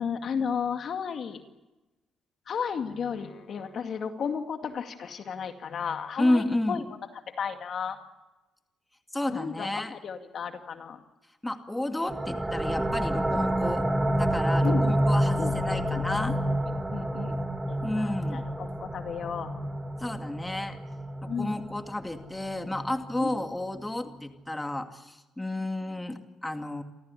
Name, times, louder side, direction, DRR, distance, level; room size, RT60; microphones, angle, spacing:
voice 1, 0.0-1.4 2.5-6.9 7.3-8.0 9.3-11.0 14.6-15.0 15.4-15.6 16.9-17.4 17.7-19.5 21.3-21.5 23.2-23.3, left 6 dB, 60° left, 6 dB, 2.2 m, -33 dB
voice 2, 6.2-6.8 9.1-9.9 11.4-13.9 14.2-16.4 17.8-18.4 20.0-20.8 21.4-26.8, left 1 dB, 10° left, 6 dB, 2.3 m, -31 dB
sound 1, 12.1-23.5, right 1 dB, 15° right, 3.2 m, -29 dB
28.5 x 14.0 x 10.0 m, 1.1 s
cardioid pair, 90°, 0 cm